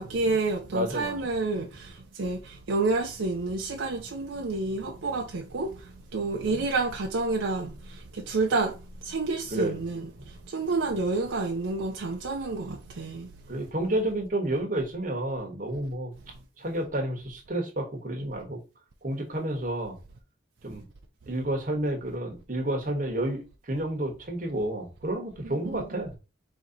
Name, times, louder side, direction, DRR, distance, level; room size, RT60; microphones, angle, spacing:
voice 1, 0.0-8.8 9.0-13.3 25.4-25.9, right 3 dB, 80° right, 0.6 m, -29 dB
voice 2, 0.7-1.1 1.5-1.6 6.5-6.6 9.5-9.8 13.5-16.1 16.6-18.6 19.0-20.0 20.6-20.8 21.3-26.2, right 1 dB, 45° right, 1.2 m, -30 dB
4.4 x 2.8 x 3.8 m
head